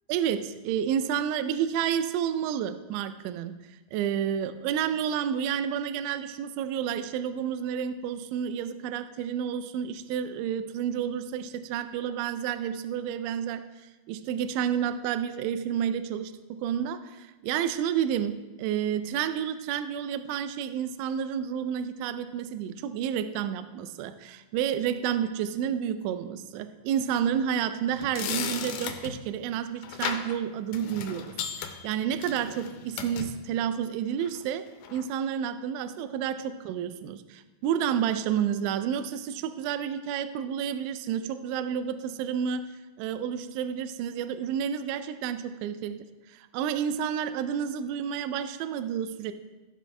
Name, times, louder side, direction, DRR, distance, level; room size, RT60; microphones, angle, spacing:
voice 1, 0.1-3.5 3.9-13.6 14.1-31.3 31.6-42.7 43.0-49.3, right 9 dB, 85° right, 10 dB, 2.7 m, -30 dB
sound 1, 27.9-29.2 29.8-30.4 30.7-33.3 34.2-34.4 34.8-35.0, left 8 dB, 85° left, 3.2 m, -35 dB
15.0 x 7.5 x 3.3 m, 1.1 s
omnidirectional pair, 5.9 m